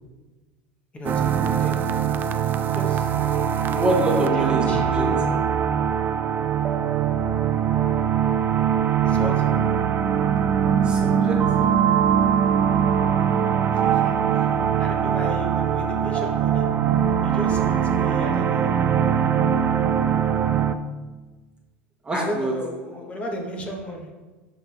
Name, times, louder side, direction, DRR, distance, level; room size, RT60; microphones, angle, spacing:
voice 1, 0.9-1.8 2.7-3.1 4.2-5.4 9.0-9.3 13.7-14.5 14.8-16.6 17.2-18.7 22.1-24.1, left 1 dB, 20° left, 0 dB, 1.4 m, -33 dB
sound 1, 1.0-20.7, right 8 dB, 35° right, 0.5 m, -22 dB
voice 2, 3.7-4.6 4.9-5.3 10.8-11.7 16.9-17.1 17.6-18.1 22.0-22.5, right 2 dB, 15° right, 0 dB, 1.4 m, -26 dB
11.0 x 4.6 x 3.5 m, 1.3 s
supercardioid pair, 120°, 6 cm